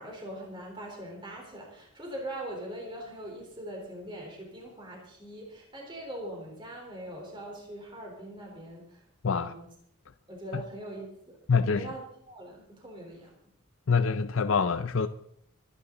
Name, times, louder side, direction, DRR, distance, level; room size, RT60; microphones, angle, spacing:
voice 1, 0.0-9.0 9.4-9.6 10.3-11.4 11.7-12.0 12.3-13.3, right 1 dB, 20° right, 3.8 m, -41 dB
voice 2, 9.2-9.6 10.5-10.6 11.5-11.9 13.9-15.1, left 5 dB, 70° left, 0.5 m, -25 dB
26.0 x 9.9 x 3.9 m
head